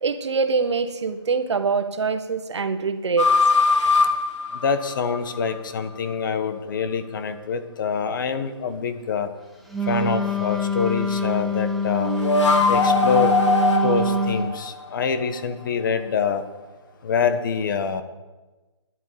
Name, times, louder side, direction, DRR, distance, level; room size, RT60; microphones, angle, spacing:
voice 1, 0.0-3.3, right 5 dB, 70° right, 9 dB, 1.6 m, -24 dB
sound 1, 3.2-5.5 12.0-15.4, left 3 dB, 80° left, 2.9 m, -21 dB
voice 2, 4.5-9.3 9.8-12.1 12.7-13.4 13.8-16.4 17.0-18.0, left 6 dB, 45° left, 9 dB, 1.4 m, -25 dB
Wind instrument woodwind instrument, 9.7-14.5, left 1 dB, ahead, 1.0 m, -25 dB
12.5 x 11.0 x 8.8 m, 1.2 s
hypercardioid pair, 160°, 15 cm